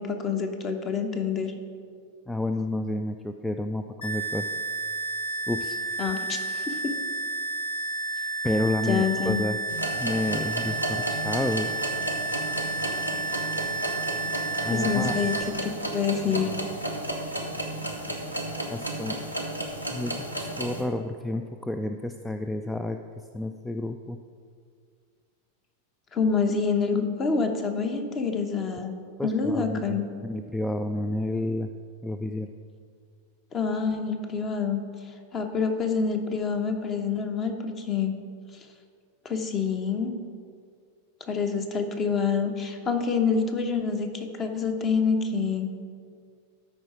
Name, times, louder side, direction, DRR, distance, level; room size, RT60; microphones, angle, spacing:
voice 1, 0.0-1.5 6.0-6.9 8.9-9.4 14.7-15.4 15.6-16.6 26.1-28.9 29.2-30.0 33.5-34.8 35.3-38.1 39.2-40.1 41.2-45.7, left 5 dB, 25° left, 6 dB, 1.0 m, -27 dB
voice 2, 2.3-4.5 5.5-5.8 8.4-9.6 10.0-11.7 14.6-15.2 18.7-19.2 19.9-23.0 23.3-24.2 29.2-31.7 32.0-32.5, left 1 dB, 5° left, 7 dB, 0.3 m, -30 dB
sound 1, 4.0-15.4, right 3 dB, 70° left, 2.2 m, -31 dB
sound 2, 9.7-20.8, right 1 dB, 85° left, 1.1 m, -33 dB
13.0 x 4.8 x 4.7 m, 2.1 s
figure-of-eight pair, 90°, 0 cm